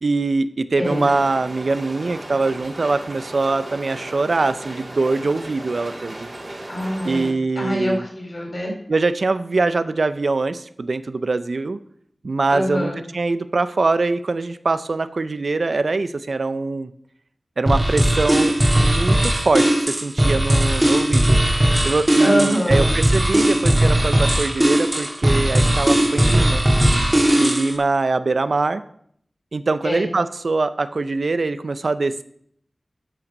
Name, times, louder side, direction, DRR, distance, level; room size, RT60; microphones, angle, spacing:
voice 1, 0.0-6.3 7.0-8.0 8.9-11.8 12.2-16.9 17.6-21.4 21.8-26.6 27.4-28.8 29.5-32.2, right 3 dB, 75° right, 12 dB, 0.5 m, -23 dB
voice 2, 0.8-1.1 6.7-7.3 7.6-8.7 12.5-13.0 22.2-22.9 29.8-30.0, equal, 50° left, 0 dB, 4.5 m, -24 dB
sound 1, 0.8-7.3, right 1 dB, 50° right, 2.4 m, -36 dB
sound 2, 17.7-27.7, right 1 dB, 20° right, 1.7 m, -18 dB
12.0 x 5.8 x 5.3 m, 0.66 s
wide cardioid pair, 55°, 0 cm